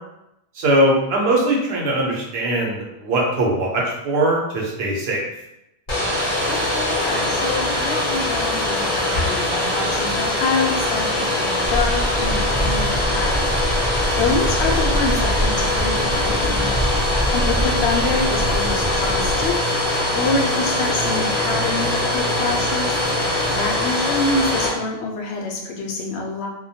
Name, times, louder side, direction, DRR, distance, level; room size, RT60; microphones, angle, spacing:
voice 1, 0.5-5.3, right 1 dB, 70° right, -3 dB, 0.9 m, -20 dB
Domestic sounds home sounds, 5.9-24.7, left 1 dB, 55° left, 0.8 m, -22 dB
voice 2, 6.5-13.5 14.2-16.7 17.3-26.5, left 3 dB, 90° left, 0 dB, 0.8 m, -26 dB
sound 1, 11.6-19.5, equal, 30° right, 0.5 m, -25 dB
sound 2, 12.3-23.8, right 2 dB, 20° left, 0.5 m, -36 dB
2.2 x 2.1 x 2.6 m, 0.86 s
omnidirectional pair, 1.1 m